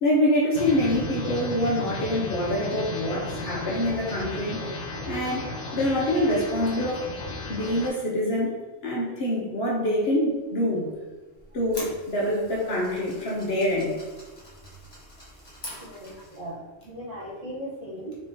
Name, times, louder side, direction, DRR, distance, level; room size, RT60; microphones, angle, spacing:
voice 1, 0.0-4.8 5.1-7.0 7.5-8.6 8.8-10.9 11.5-13.9, left 1 dB, 55° left, -4 dB, 0.9 m, -25 dB
sound 1, 0.5-7.9, left 2 dB, 90° left, 1.1 m, -34 dB
sound 2, 11.4-16.5, equal, 20° left, 0.9 m, -44 dB
voice 2, 15.8-18.2, equal, 65° right, -6 dB, 1.4 m, -38 dB
3.7 x 3.3 x 2.7 m, 1.2 s
omnidirectional pair, 1.4 m